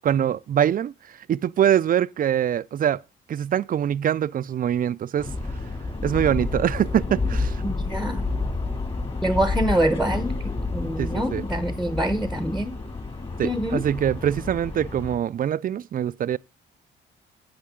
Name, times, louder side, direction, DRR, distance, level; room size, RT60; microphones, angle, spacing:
voice 1, 0.0-3.0 3.3-5.3 6.0-7.7 11.0-11.4 13.4-16.4, right 10 dB, 45° right, 0.4 m, -24 dB
sound 1, 5.2-15.2, left 3 dB, 25° left, 2.4 m, -29 dB
voice 2, 7.6-8.3 9.2-12.8 13.4-13.8, right 1 dB, ahead, 0.9 m, -25 dB
16.5 x 5.7 x 3.7 m
cardioid pair, 90°, 20 cm